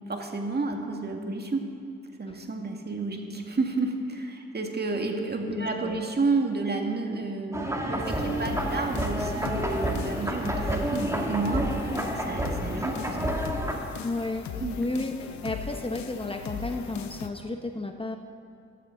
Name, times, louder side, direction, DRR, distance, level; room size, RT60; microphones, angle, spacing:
voice 1, 0.1-1.6 2.2-13.3 14.6-14.8, right 3 dB, 35° right, 2 dB, 2.1 m, -31 dB
voice 2, 5.5-6.0 14.0-14.5 14.8-18.2, left 2 dB, 20° left, 4 dB, 1.0 m, -32 dB
sound 1, 7.5-13.7, right 1 dB, 10° right, 2.2 m, -29 dB
sound 2, 8.0-17.3, left 7 dB, 70° left, 0.8 m, -38 dB
14.5 x 12.5 x 3.9 m, 2.6 s
hypercardioid pair, 45°, 29 cm